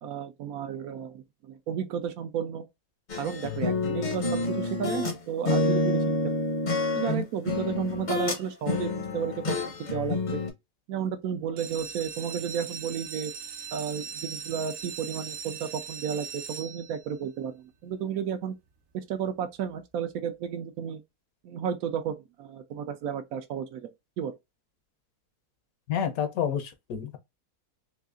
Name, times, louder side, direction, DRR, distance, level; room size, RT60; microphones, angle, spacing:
voice 1, 0.0-2.6 3.2-6.0 6.9-10.4 10.9-13.3 13.7-18.5 18.9-21.0 21.4-23.9 24.2-24.3, right 8 dB, 75° right, 1.0 m, -33 dB
sound 1, 3.1-5.2 5.5-8.4 8.7-10.5, left 2 dB, 40° left, 0.6 m, -28 dB
sound 2, 11.4-17.2 17.8-18.3 18.7-18.8 19.0-19.1 19.5-19.7, right 6 dB, 60° right, 0.5 m, -40 dB
voice 2, 25.9-27.2, left 8 dB, 70° left, 1.1 m, -29 dB
4.0 x 2.7 x 2.4 m
omnidirectional pair, 1.7 m